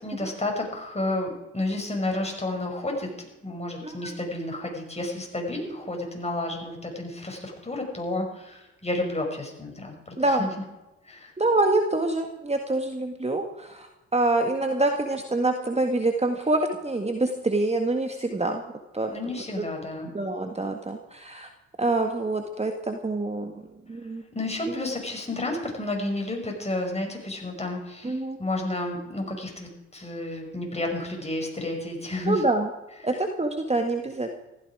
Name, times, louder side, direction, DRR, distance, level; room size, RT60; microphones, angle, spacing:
voice 1, 0.0-10.5 11.0-11.3 19.1-20.1 24.3-32.4 33.0-33.2, left 2 dB, 20° left, 1 dB, 5.8 m, -31 dB
voice 2, 10.2-10.5 11.4-18.6 18.9-19.1 20.1-21.5 21.8-23.6 23.9-24.2 28.0-28.4 32.3-32.7 33.0-34.3, right 2 dB, 20° right, 5 dB, 1.7 m, -26 dB
15.5 x 14.0 x 5.0 m, 0.99 s
hypercardioid pair, 45°, 33 cm